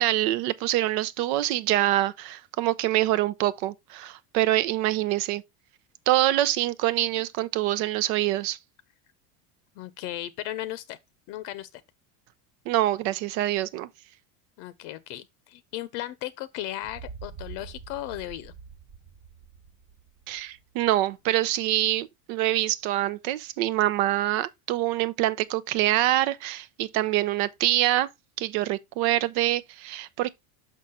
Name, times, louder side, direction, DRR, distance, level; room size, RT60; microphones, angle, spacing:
voice 1, 0.0-5.4 6.1-8.6 12.7-13.9 20.3-28.1 28.4-30.3, right 15 dB, 65° right, 0.7 m, -25 dB
voice 2, 9.8-11.0 11.3-11.8 14.6-18.5, left 14 dB, 60° left, 0.7 m, -36 dB
sound 1, 16.8-20.7, right 5 dB, 30° right, 0.7 m, -45 dB
6.1 x 5.7 x 3.7 m
cardioid pair, 155°, 45 cm